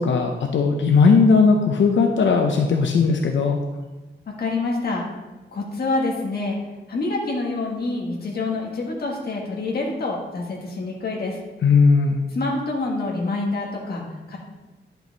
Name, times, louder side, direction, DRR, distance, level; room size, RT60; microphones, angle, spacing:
voice 1, 0.0-3.6 11.6-12.2, left 4 dB, 80° left, 2 dB, 0.7 m, -17 dB
voice 2, 4.4-5.0 5.5-6.6 6.9-11.4 12.3-14.4, left 3 dB, 55° left, -2 dB, 1.5 m, -26 dB
10.5 x 5.7 x 4.0 m, 1.1 s
wide cardioid pair, 170°, 19 cm